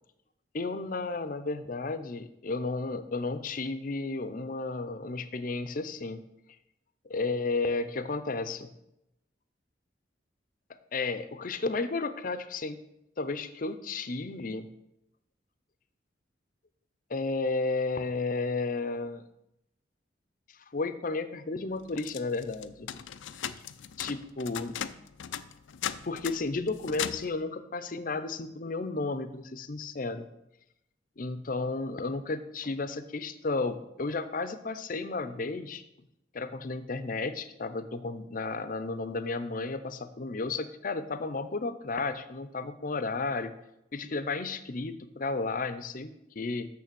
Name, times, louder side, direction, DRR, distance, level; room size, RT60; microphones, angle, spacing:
voice 1, 0.5-6.2 7.1-8.7 10.7-12.8 13.2-14.7 17.1-19.2 20.7-22.9 23.4-23.5 24.0-24.8 26.0-30.3 31.2-35.8 36.3-43.5 43.9-46.7, left 3 dB, 45° left, 11 dB, 0.6 m, -33 dB
sound 1, 21.9-27.4, left 9 dB, 85° left, 0.4 m, -38 dB
6.5 x 6.5 x 6.9 m, 0.85 s
head